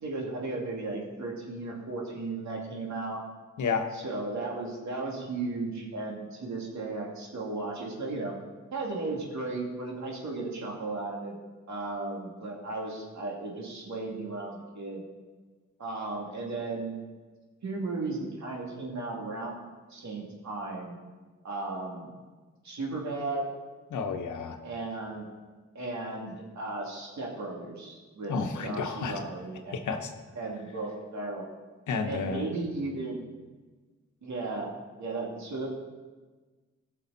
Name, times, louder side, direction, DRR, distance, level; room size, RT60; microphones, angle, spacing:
voice 1, 0.0-3.2 3.9-8.3 8.7-11.4 11.7-15.0 15.8-16.9 17.6-21.0 21.4-22.1 22.6-23.5 24.6-25.3 25.7-29.8 30.3-31.5 32.0-33.2 34.2-34.7 35.0-35.7, right 3 dB, 70° right, -1 dB, 2.4 m, -35 dB
voice 2, 3.6-3.9 23.9-24.6 28.3-29.2 29.7-30.1 31.9-32.4, left 5 dB, 85° left, 5 dB, 1.0 m, -31 dB
15.0 x 6.4 x 4.0 m, 1.3 s
cardioid pair, 60°, 29 cm